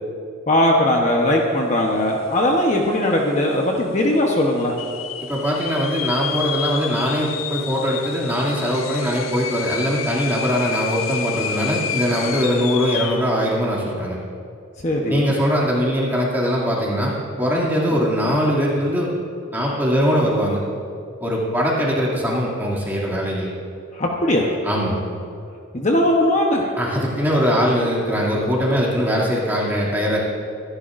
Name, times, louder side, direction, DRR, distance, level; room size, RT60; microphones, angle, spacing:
voice 1, 0.5-4.7 14.8-15.3 17.9-18.0 23.9-24.5 25.7-26.7, left 1 dB, 35° left, 0 dB, 1.0 m, -19 dB
sound 1, 2.4-2.5 2.7-3.3 3.8-3.9 4.6-13.3, left 9 dB, 85° left, 0.7 m, -30 dB
voice 2, 5.2-14.2 15.1-17.1 17.4-19.1 19.5-20.6 21.2-23.5 24.6-25.0 26.8-30.2, equal, 10° right, -6 dB, 2.5 m, -21 dB
24.0 x 11.5 x 2.6 m, 2.5 s
head